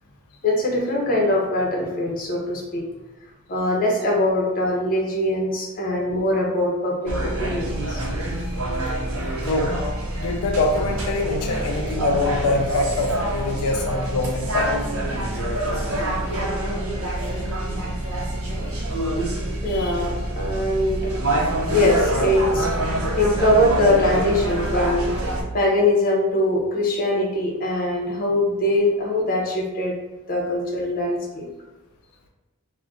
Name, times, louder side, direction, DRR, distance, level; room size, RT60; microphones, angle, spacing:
voice 1, 0.4-2.9 3.5-8.0 9.2-9.3 19.6-21.4 21.7-22.7 23.2-25.1 25.5-30.0 30.3-31.5, left 1 dB, 40° left, -2 dB, 0.7 m, -22 dB
sound 1, 7.1-25.4, right 1 dB, 70° right, 0.7 m, -26 dB
voice 2, 10.2-14.7 19.7-19.9, left 2 dB, 90° left, 2 dB, 0.4 m, -24 dB
2.5 x 2.1 x 3.4 m, 1.1 s
head